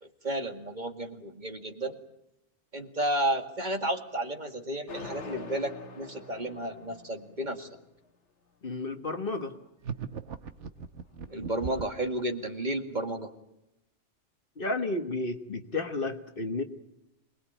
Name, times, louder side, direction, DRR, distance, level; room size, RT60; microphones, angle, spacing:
voice 1, 0.0-2.0 2.7-7.7 11.3-13.3, right 1 dB, 40° right, 5 dB, 2.3 m, -32 dB
sound 1, 4.9-7.8, left 4 dB, 70° left, 1.9 m, -44 dB
voice 2, 8.6-9.5 14.6-16.6, left 2 dB, 50° left, 8 dB, 1.5 m, -32 dB
sound 2, 9.8-12.0, right 6 dB, 70° right, 1.5 m, -38 dB
26.5 x 20.5 x 9.0 m, 0.87 s
omnidirectional pair, 1.3 m